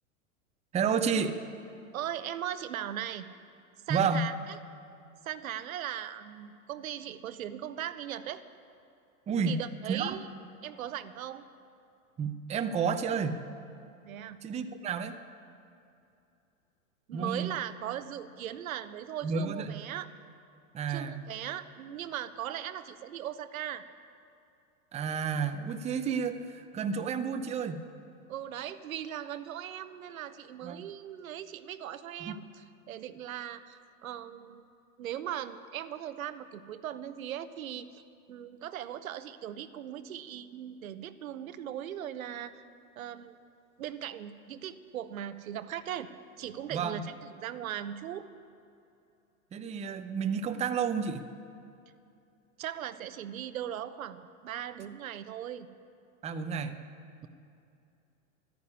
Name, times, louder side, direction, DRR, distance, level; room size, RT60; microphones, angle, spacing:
voice 1, 0.7-1.4 3.9-4.3 9.3-9.6 9.9-10.2 12.2-13.4 14.4-15.2 17.1-17.5 19.2-19.8 20.7-21.2 24.9-27.8 30.6-30.8 32.2-32.4 46.7-47.0 49.5-51.2 56.2-56.8, right 6 dB, 15° right, 7 dB, 0.6 m, -31 dB
voice 2, 1.9-3.3 3.9-4.3 5.2-8.4 9.5-10.3 10.6-11.4 14.0-14.4 17.1-20.1 20.9-23.9 28.3-34.6 35.0-37.9 38.3-42.6 43.0-43.3 43.8-46.1 46.4-48.3 52.6-55.7, right 10 dB, 75° right, 12 dB, 0.8 m, -39 dB
12.0 x 9.5 x 9.9 m, 2.6 s
hypercardioid pair, 105°, 42 cm